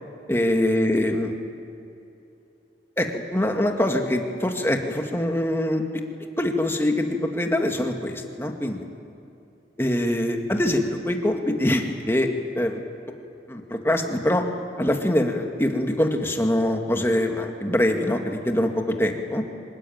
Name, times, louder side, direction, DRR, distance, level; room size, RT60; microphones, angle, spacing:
voice 1, 0.3-1.4 3.0-5.8 6.4-8.8 9.8-12.3 12.6-12.8 13.5-14.4 14.8-19.4, left 1 dB, 15° left, 3 dB, 2.0 m, -24 dB
25.5 x 20.5 x 9.5 m, 2.7 s
head